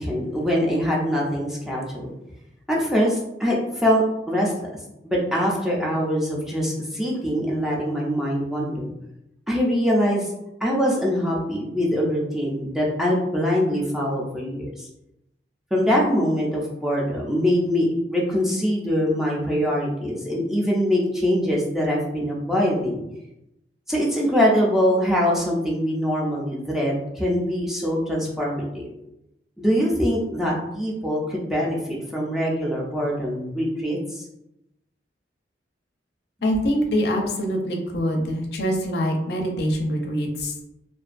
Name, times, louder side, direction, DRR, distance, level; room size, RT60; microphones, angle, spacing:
voice 1, 0.0-2.1 2.7-4.7 5.0-8.9 9.5-10.3 10.6-14.9 15.7-23.0 23.9-28.9 29.6-31.8 32.1-34.3, equal, ahead, -4 dB, 0.4 m, -23 dB
voice 2, 36.4-40.5, equal, 65° left, 2 dB, 0.5 m, -24 dB
2.5 x 2.2 x 2.4 m, 0.87 s
head